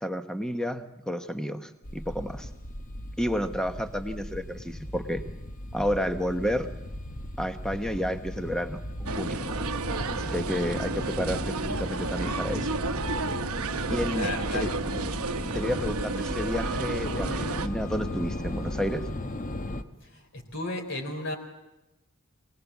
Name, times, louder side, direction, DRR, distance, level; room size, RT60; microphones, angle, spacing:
voice 1, 0.0-2.5 3.2-5.2 5.7-6.7 7.4-9.4 10.1-12.7 13.9-14.7 15.5-19.0, equal, 5° left, 7 dB, 1.1 m, -31 dB
sound 1, 1.8-19.8, left 1 dB, 35° left, 1.1 m, -36 dB
sound 2, 9.1-17.7, right 4 dB, 70° right, 0.9 m, -32 dB
voice 2, 14.1-14.8 20.0-21.3, left 2 dB, 60° left, 1 dB, 4.4 m, -34 dB
23.5 x 18.5 x 7.3 m, 0.97 s
head